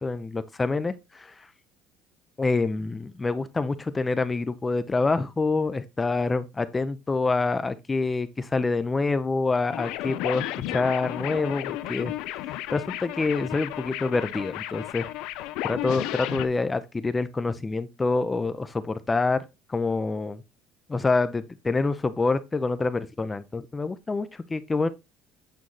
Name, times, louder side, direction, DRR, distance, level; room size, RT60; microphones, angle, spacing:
voice 1, 0.0-1.5 2.4-12.1 12.7-15.1 15.6-19.4 19.7-20.4 20.9-24.9, left 3 dB, 15° left, 0.4 m, -26 dB
sound 1, 9.7-16.5, left 14 dB, 70° left, 0.5 m, -33 dB
8.4 x 3.1 x 3.8 m
cardioid pair, 155°, 0 cm